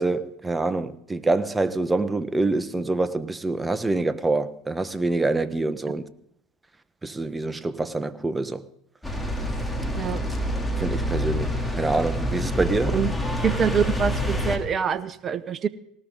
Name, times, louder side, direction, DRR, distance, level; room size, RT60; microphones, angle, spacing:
voice 1, 0.0-6.0 7.0-8.6 10.8-13.0, right 2 dB, 15° right, 1.2 m, -26 dB
sound 1, 9.0-14.6, left 1 dB, 5° left, 3.3 m, -27 dB
voice 2, 13.4-15.7, right 7 dB, 35° right, 0.9 m, -25 dB
19.0 x 19.0 x 4.0 m
hypercardioid pair, 80°, 0 cm